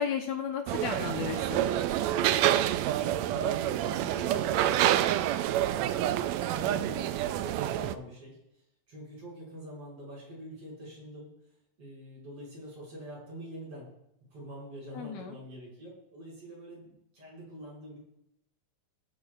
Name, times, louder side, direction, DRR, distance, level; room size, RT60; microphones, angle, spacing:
voice 1, 0.0-1.6 14.9-15.4, left 7 dB, 70° left, 3 dB, 2.2 m, -33 dB
sound 1, 0.7-8.0, right 12 dB, 80° right, 1.6 m, -28 dB
voice 2, 3.3-5.0 5.4-7.1 7.4-8.4 8.9-11.3 11.8-13.9 14.3-18.0, equal, 50° right, -5 dB, 6.6 m, -45 dB
20.0 x 11.0 x 2.4 m, 0.80 s
omnidirectional pair, 3.6 m